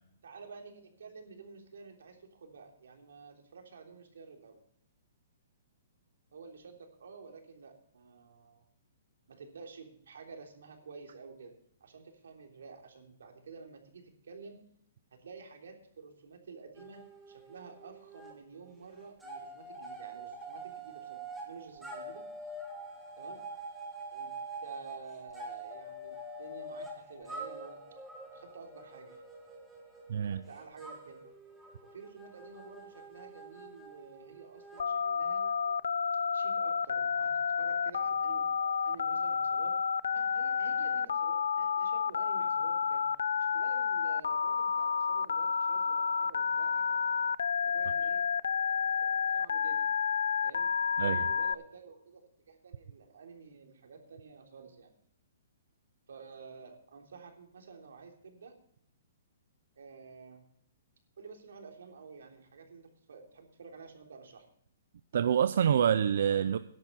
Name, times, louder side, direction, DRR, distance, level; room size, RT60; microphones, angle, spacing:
voice 1, 0.2-4.6 6.3-8.7 9.3-14.6 15.1-22.3 23.2-23.4 24.1-24.4 24.6-27.8 28.3-29.2 30.3-31.2 31.8-35.5 36.3-39.8 40.1-43.1 43.4-47.0 47.6-48.3 48.7-49.9 50.4-54.9 56.1-58.6 59.8-60.5 61.2-64.5, right 5 dB, 80° right, 2 dB, 3.4 m, -51 dB
sound 1, 16.8-18.4 18.6-35.7, right 2 dB, ahead, 1.6 m, -46 dB
voice 2, 30.1-30.4 51.0-51.2 65.1-66.6, right 8 dB, 50° right, 12 dB, 0.5 m, -26 dB
Telephone, 34.8-51.5, left 6 dB, 75° left, 0.4 m, -30 dB
13.5 x 11.0 x 4.2 m, 0.68 s
hypercardioid pair, 180°, 0 cm